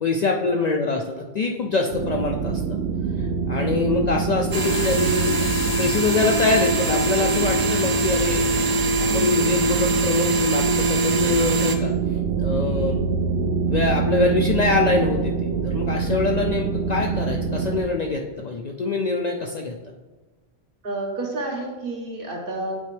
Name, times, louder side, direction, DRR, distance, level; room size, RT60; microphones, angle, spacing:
voice 1, 0.0-2.6 3.2-5.4 5.8-8.4 9.0-11.9 12.4-13.0 13.7-19.8, left 3 dB, 55° left, 1 dB, 0.5 m, -24 dB
sound 1, 1.9-17.8, right 6 dB, 80° right, 0.9 m, -25 dB
sound 2, 4.5-11.8, right 1 dB, 35° right, 0.3 m, -23 dB
voice 2, 20.8-22.7, right 2 dB, 55° right, 0 dB, 1.3 m, -30 dB
8.5 x 4.3 x 3.3 m, 1.2 s
omnidirectional pair, 1.1 m